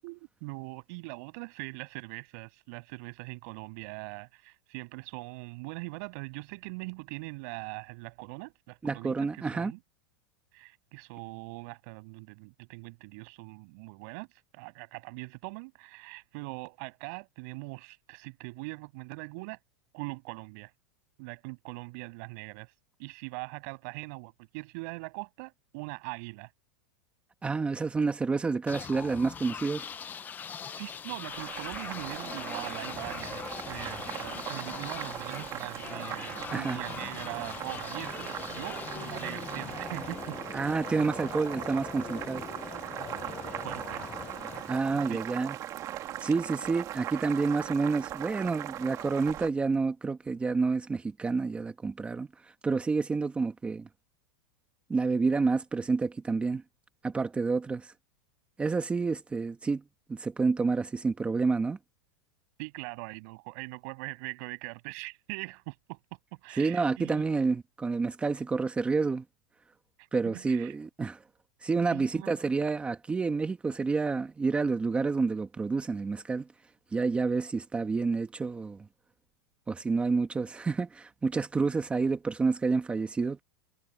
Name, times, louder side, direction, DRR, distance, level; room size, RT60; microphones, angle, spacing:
voice 1, 0.0-9.8 10.5-14.3 14.5-19.6 19.9-20.7 21.2-22.7 23.0-26.5 30.4-40.4 43.0-44.1 44.9-45.2 62.6-66.0 66.4-67.2 70.0-70.7 71.9-72.3, right 30 dB, 50° right, 7.3 m, -42 dB
voice 2, 8.8-9.7 27.4-29.9 36.5-36.8 40.5-42.4 44.7-45.6 46.2-53.9 54.9-56.6 57.0-57.9 58.6-59.8 60.1-61.8 66.6-69.2 70.1-71.2 71.6-76.4 76.9-78.8 79.7-83.4, right 4 dB, 10° right, 1.3 m, -29 dB
sound 1, 28.7-45.4, left 7 dB, 15° left, 0.7 m, -41 dB
Boiling, 31.3-49.5, right 12 dB, 30° right, 1.9 m, -39 dB
supercardioid pair, 155°, 11 cm